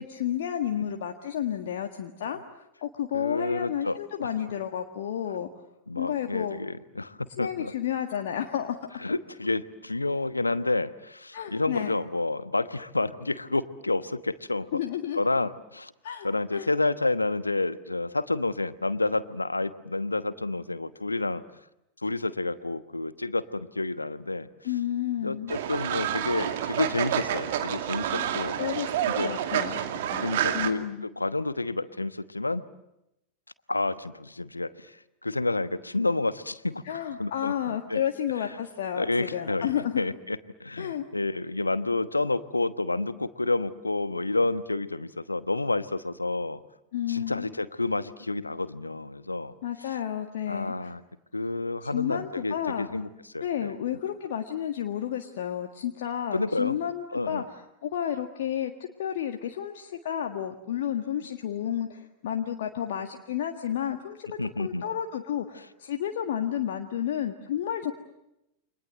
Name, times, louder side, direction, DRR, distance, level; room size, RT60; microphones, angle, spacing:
voice 1, 0.0-5.5 5.9-6.6 7.4-8.9 11.3-11.9 14.7-15.2 16.0-16.3 16.5-16.7 24.6-25.5 28.1-28.3 28.6-29.8 30.1-30.3 30.5-31.1 36.8-40.0 40.8-41.0 46.9-47.5 49.6-50.9 51.8-52.9 53.4-58.7 59.0-64.3 64.6-67.9, left 10 dB, 55° left, 4 dB, 1.7 m, -31 dB
voice 2, 3.1-4.3 5.9-7.7 9.0-14.7 15.1-15.9 16.2-21.4 22.0-24.5 25.2-28.6 29.1-29.3 30.2-32.6 33.7-35.0 35.2-36.8 37.2-38.0 38.9-46.6 47.1-49.5 50.5-51.0 51.3-53.1 53.3-53.7 56.3-56.8 57.1-57.4 64.4-64.8, left 2 dB, 80° left, 14 dB, 1.1 m, -29 dB
Fowl, 25.5-30.7, right 10 dB, 55° right, 2.4 m, -29 dB
29.5 x 25.5 x 7.7 m, 0.87 s
figure-of-eight pair, 90°, 0 cm